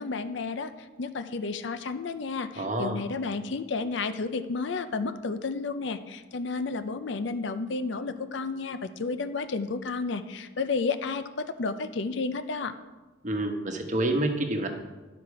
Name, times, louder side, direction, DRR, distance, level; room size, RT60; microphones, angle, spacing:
voice 1, 0.0-12.7, left 4 dB, 60° left, 11 dB, 0.5 m, -32 dB
voice 2, 2.6-3.0 13.2-14.7, right 1 dB, 35° right, 4 dB, 1.1 m, -28 dB
11.5 x 5.9 x 4.8 m, 1.2 s
head